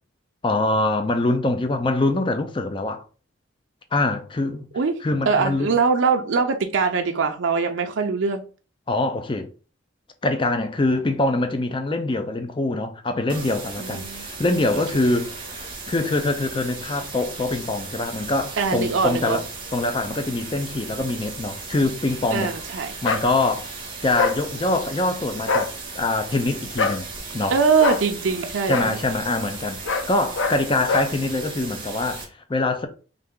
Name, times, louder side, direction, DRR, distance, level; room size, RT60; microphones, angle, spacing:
voice 1, 0.4-3.0 3.9-4.7 5.0-5.7 8.9-9.5 10.2-15.3 15.6-19.4 19.7-22.5 23.0-23.7 24.0-25.7 25.9-27.1 27.3-27.6 28.7-32.9, left 2 dB, 25° left, 0.5 m, -24 dB
voice 2, 5.3-8.4 13.8-14.3 14.7-14.8 18.6-19.4 22.3-22.9 27.5-29.0, right 5 dB, 70° right, 0.5 m, -22 dB
sound 1, 13.3-32.2, right 3 dB, 25° right, 0.8 m, -36 dB
sound 2, 23.0-23.3 24.2-24.4 25.4-25.7 26.8-27.0 27.8-28.0 28.7-28.9 29.8-30.1 30.3-30.6 30.9-31.1, left 4 dB, 70° left, 0.6 m, -23 dB
3.3 x 2.6 x 3.7 m
head